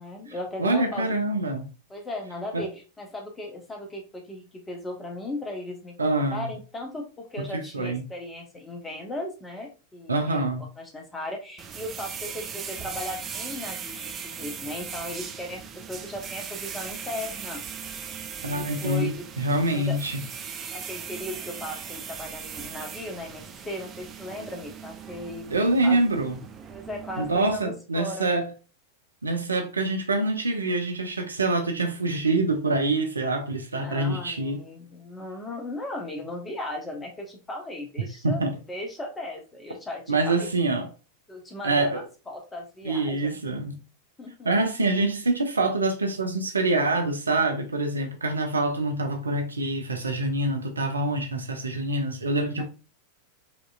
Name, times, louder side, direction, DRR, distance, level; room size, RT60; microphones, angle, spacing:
voice 1, 0.0-1.1 1.9-17.6 18.5-19.3 19.7-20.0 20.7-26.0 26.7-28.3 33.8-40.5 41.3-43.4 44.2-44.5 52.6-52.7, left 1 dB, 15° left, 1.0 m, -37 dB
voice 2, 0.6-1.7 2.5-2.6 6.0-6.5 7.5-8.0 10.1-10.7 18.4-20.2 25.5-26.4 27.2-28.5 29.2-34.6 38.2-38.6 40.1-40.9 41.6-42.0 42.8-43.8 44.4-52.6, right 2 dB, 75° right, 0.6 m, -25 dB
sound 1, 11.6-27.6, right 7 dB, 25° right, 0.5 m, -39 dB
5.1 x 2.9 x 2.3 m
figure-of-eight pair, 90°, 0 cm